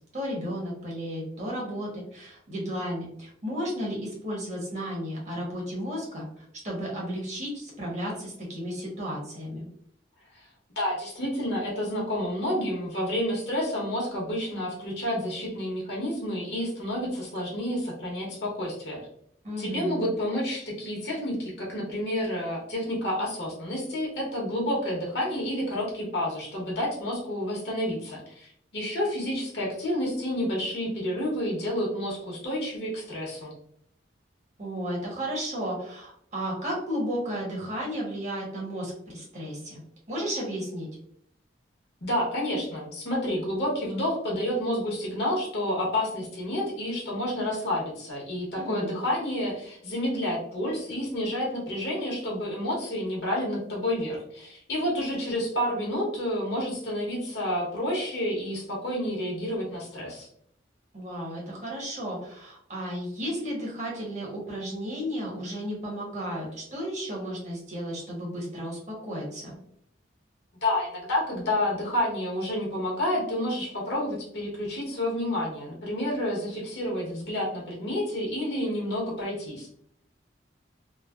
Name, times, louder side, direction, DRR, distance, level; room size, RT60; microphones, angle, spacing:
voice 1, 0.1-6.2 6.6-9.7 19.4-20.0 34.6-39.8 40.1-40.9 48.5-49.0 60.9-69.5, equal, 40° right, -3 dB, 1.0 m, -33 dB
voice 2, 10.8-19.0 19.6-33.5 42.0-60.3 70.6-79.7, left 1 dB, 65° left, -3 dB, 0.9 m, -29 dB
3.1 x 2.0 x 2.3 m, 0.68 s
head